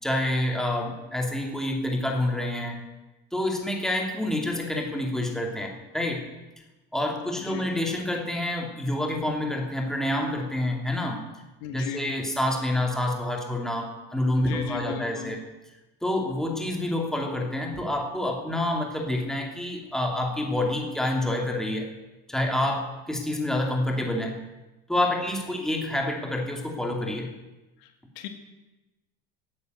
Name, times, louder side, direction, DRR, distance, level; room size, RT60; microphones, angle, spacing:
voice 1, 0.0-2.8 3.3-6.3 6.9-11.2 11.7-15.4 16.0-21.9 22.3-24.4 24.9-27.3, left 1 dB, ahead, 0 dB, 2.7 m, -28 dB
voice 2, 11.6-12.0 14.4-15.4 27.8-27.9 28.2-28.3, left 9 dB, 90° left, 5 dB, 2.5 m, -36 dB
18.0 x 9.6 x 8.0 m, 1.1 s
cardioid pair, 140°, 29 cm